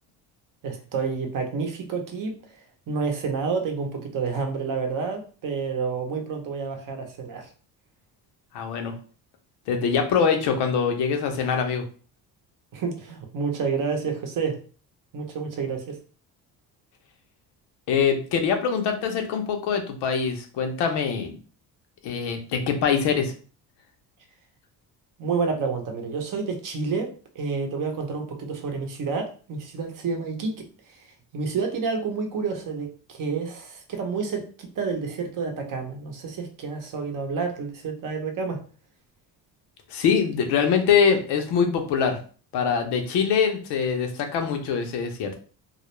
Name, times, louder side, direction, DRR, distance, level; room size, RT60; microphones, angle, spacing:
voice 1, 0.6-2.3 2.9-7.5 12.7-14.6 15.1-16.0 25.2-31.1 31.3-38.6, right 5 dB, 50° right, 4 dB, 0.7 m, -29 dB
voice 2, 8.5-8.9 9.7-11.8 17.9-21.3 22.0-23.3 39.9-42.2 42.5-45.4, left 6 dB, 80° left, 5 dB, 0.7 m, -23 dB
2.3 x 2.0 x 3.0 m, 0.40 s
cardioid pair, 105°, 40 cm